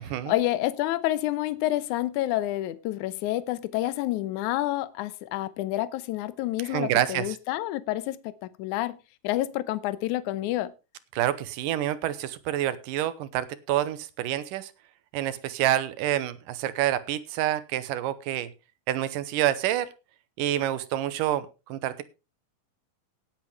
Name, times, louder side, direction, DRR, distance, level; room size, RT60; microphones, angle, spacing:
voice 1, 0.3-9.0 9.2-10.7, left 15 dB, 75° left, 2.1 m, -28 dB
voice 2, 6.6-7.3 11.1-14.7 15.1-18.5 18.9-19.9 20.4-22.1, right 12 dB, 85° right, 2.5 m, -27 dB
18.5 x 8.4 x 3.3 m
omnidirectional pair, 3.8 m